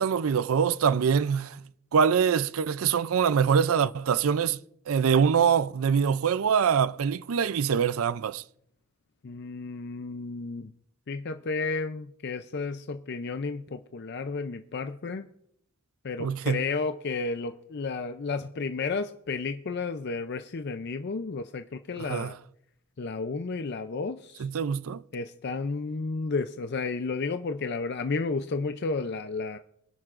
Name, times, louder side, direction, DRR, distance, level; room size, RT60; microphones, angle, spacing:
voice 1, 0.0-1.6 1.9-4.6 4.9-8.4 16.2-16.6 22.1-22.3 24.4-25.0, right 7 dB, 80° right, 0.4 m, -24 dB
voice 2, 9.2-10.7 11.1-15.3 16.0-22.4 23.0-24.5 25.1-29.6, left 4 dB, 50° left, 0.5 m, -32 dB
23.5 x 10.5 x 2.5 m
head